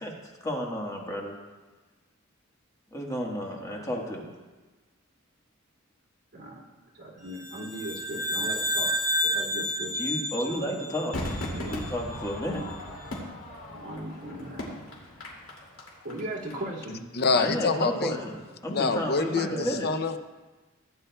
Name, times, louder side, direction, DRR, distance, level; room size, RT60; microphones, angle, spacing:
voice 1, 0.4-1.3 2.9-4.3 10.0-11.2 11.6-12.6 17.3-19.9, equal, 15° left, -1 dB, 1.4 m, -32 dB
voice 2, 6.3-6.6 7.0-8.9 9.2-9.9 10.5-10.7 11.5-11.8 12.4-12.7 13.7-14.8 16.0-17.0 19.2-19.8, right 1 dB, 55° right, -5 dB, 2.6 m, -38 dB
sound 1, 7.4-11.9, equal, 20° right, 2.8 m, -30 dB
Crowd / Fireworks, 11.1-16.5 16.8-16.9, left 1 dB, 70° left, 2.4 m, -37 dB
voice 3, 17.1-18.2 18.7-20.2, left 4 dB, 50° left, 9 dB, 0.6 m, -26 dB
16.0 x 9.4 x 2.3 m, 1.2 s
head